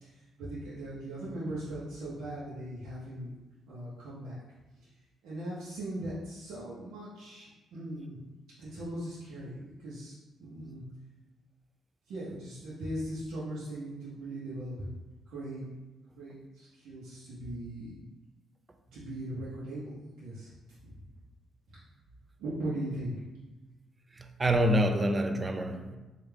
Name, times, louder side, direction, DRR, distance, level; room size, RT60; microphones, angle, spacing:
voice 1, 0.0-3.3 3.7-4.4 5.2-8.2 8.6-10.8 12.1-14.9 15.3-15.7 16.1-18.0 18.9-20.5 20.8-20.9 21.7-21.8 22.4-23.2, right 1 dB, 85° right, -9 dB, 0.8 m, -39 dB
voice 2, 24.2-26.0, right 1 dB, 25° right, 6 dB, 0.3 m, -27 dB
3.3 x 2.4 x 3.3 m, 1.1 s
cardioid pair, 90°, 0 cm